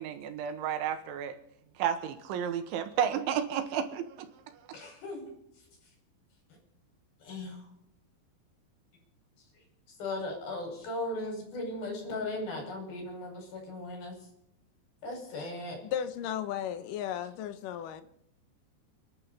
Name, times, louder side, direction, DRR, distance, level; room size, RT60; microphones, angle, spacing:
voice 1, 0.0-1.4 1.8-4.0, right 9 dB, 85° right, 3.9 m, -31 dB
voice 2, 4.7-5.3 7.2-7.7 10.0-14.1 15.0-15.8, left 2 dB, 55° left, 7.0 m, -37 dB
voice 3, 15.8-18.0, left 10 dB, 90° left, 1.8 m, -35 dB
30.0 x 11.5 x 4.1 m
omnidirectional pair, 5.3 m